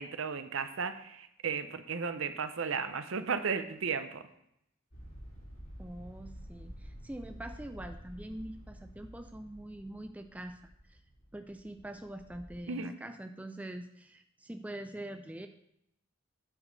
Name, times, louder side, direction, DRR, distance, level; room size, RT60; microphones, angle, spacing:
voice 1, 0.0-4.2 12.7-12.9, right 5 dB, 65° right, 10 dB, 0.6 m, -34 dB
sound 1, 4.9-12.6, equal, 70° left, 3.2 m, -50 dB
voice 2, 5.8-11.0 11.3-15.5, right 1 dB, 5° right, 7 dB, 0.3 m, -44 dB
8.9 x 6.1 x 3.9 m, 0.76 s
head